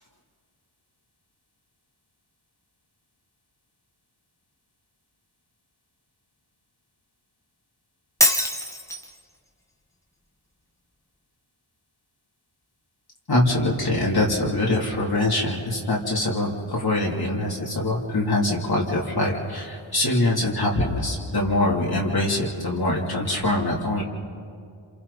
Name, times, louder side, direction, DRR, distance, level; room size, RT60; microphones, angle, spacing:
Shatter, 8.2-9.2, left 1 dB, 5° left, 1.6 m, -22 dB
voice 1, 13.3-24.0, left 1 dB, 50° left, -4 dB, 3.4 m, -23 dB
28.0 x 26.5 x 4.3 m, 2.3 s
cardioid pair, 40°, 49 cm